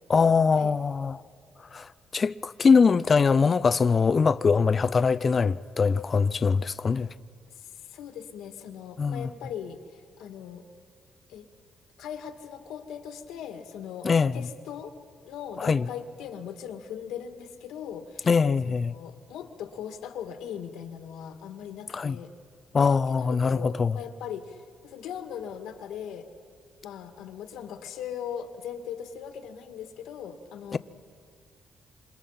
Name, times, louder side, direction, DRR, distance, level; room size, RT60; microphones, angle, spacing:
voice 1, 0.1-1.2 1.7-7.1 9.0-9.3 14.0-14.3 15.6-15.8 18.3-18.9 21.9-22.2 22.7-24.0 30.7-30.8, left 5 dB, 40° left, 0.5 m, -22 dB
voice 2, 7.5-10.6 11.3-11.5 12.0-14.9 15.2-18.3 18.6-22.3 23.1-26.3 26.8-30.8, left 8 dB, 90° left, 1.8 m, -39 dB
27.0 x 26.5 x 5.7 m
cardioid pair, 90°, 0 cm